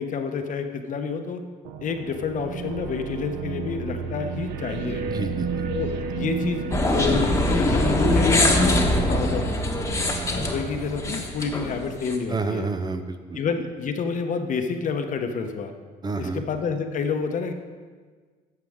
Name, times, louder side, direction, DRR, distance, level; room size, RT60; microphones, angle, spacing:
voice 1, 0.0-1.4 1.8-5.0 5.7-9.5 10.3-12.7 13.3-15.7 16.2-17.5, left 5 dB, 50° left, 6 dB, 0.9 m, -29 dB
sound 1, 1.6-11.8, right 5 dB, 80° right, 0.7 m, -32 dB
voice 2, 5.1-5.7 12.3-13.4 16.0-16.4, right 3 dB, 25° right, 8 dB, 0.6 m, -29 dB
sound 2, 6.7-12.2, left 2 dB, 15° left, 1.2 m, -23 dB
11.5 x 7.4 x 3.6 m, 1.5 s
cardioid pair, 110°, 17 cm